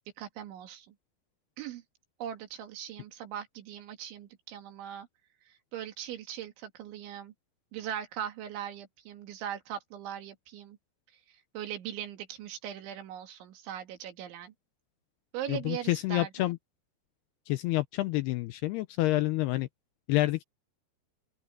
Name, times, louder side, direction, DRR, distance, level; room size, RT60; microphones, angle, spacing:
voice 1, 0.2-1.0 1.6-1.8 2.2-5.1 5.5-7.3 7.7-10.8 11.1-14.5 15.3-16.3, right 10 dB, 90° right, 4.6 m, -40 dB
voice 2, 15.5-16.6 17.5-19.7 20.1-20.4, left 17 dB, 85° left, 2.4 m, -28 dB
open air
omnidirectional pair, 5.2 m